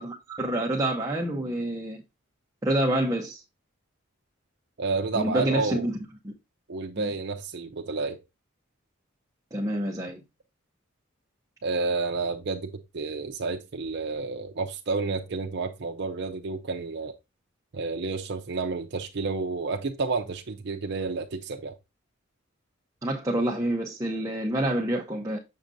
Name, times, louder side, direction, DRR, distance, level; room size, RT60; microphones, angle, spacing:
voice 1, 0.0-2.0 2.6-3.4 5.1-6.0 6.2-6.3 7.0-7.1 9.5-10.2 23.0-25.4, right 1 dB, 15° right, 0.7 m, -27 dB
voice 2, 4.8-5.9 6.7-8.2 11.6-17.1 17.7-21.7, right 4 dB, 55° right, 0.6 m, -30 dB
7.1 x 6.4 x 2.6 m
head